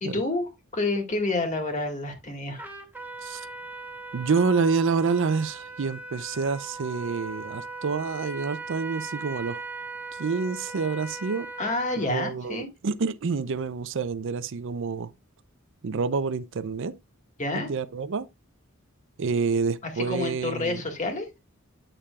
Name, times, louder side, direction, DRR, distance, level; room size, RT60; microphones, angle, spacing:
voice 1, 0.0-2.7 11.6-12.7 17.4-17.7 20.0-21.3, left 2 dB, 35° left, 2.0 m, -29 dB
Trumpet, 2.6-12.1, right 3 dB, 10° right, 1.0 m, -39 dB
voice 2, 4.1-9.6 10.2-11.5 12.1-15.1 15.8-17.0 17.5-18.3 19.2-20.8, right 5 dB, 65° right, 0.5 m, -28 dB
8.8 x 6.7 x 2.3 m
head